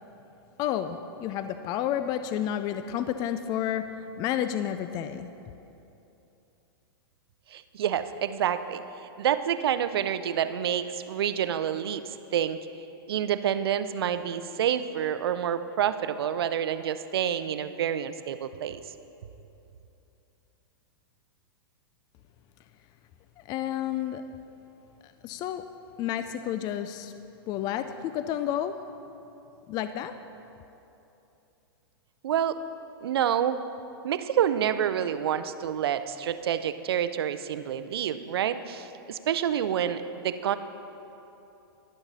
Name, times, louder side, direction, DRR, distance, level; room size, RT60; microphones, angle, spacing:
voice 1, 0.6-5.3 23.4-24.2 25.0-25.6 26.0-27.1 27.5-28.8 29.7-30.1, left 10 dB, 30° left, 10 dB, 0.4 m, -30 dB
voice 2, 7.5-8.8 9.2-12.6 13.1-18.8 32.2-32.6 33.0-33.6 34.0-40.6, right 9 dB, 75° right, 12 dB, 0.5 m, -28 dB
11.0 x 7.0 x 5.4 m, 2.9 s
hypercardioid pair, 125°, 13 cm